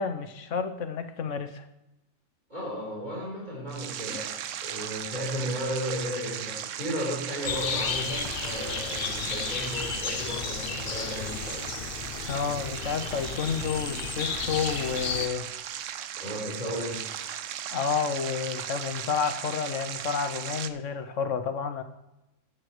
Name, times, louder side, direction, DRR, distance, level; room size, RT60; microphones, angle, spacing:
voice 1, 0.0-1.6 12.3-15.5 17.7-21.8, left 6 dB, 75° left, 9 dB, 1.2 m, -30 dB
voice 2, 2.5-4.4 4.6-11.6 16.2-17.0, equal, 35° right, -5 dB, 4.3 m, -34 dB
sound 1, 3.7-20.7, right 10 dB, 75° right, 1.0 m, -37 dB
sound 2, 7.4-15.3, left 7 dB, 50° left, 0.8 m, -33 dB
15.0 x 9.3 x 3.2 m, 0.95 s
omnidirectional pair, 1.3 m